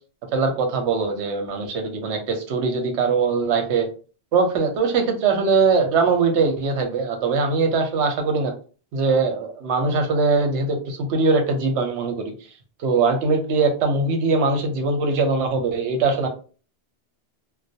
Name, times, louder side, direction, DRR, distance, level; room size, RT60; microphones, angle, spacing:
voice 1, 0.3-3.9 4.3-8.5 8.9-12.3 12.8-16.3, right 4 dB, 80° right, 4 dB, 0.9 m, -21 dB
2.3 x 2.1 x 2.7 m, 0.38 s
omnidirectional pair, 1.2 m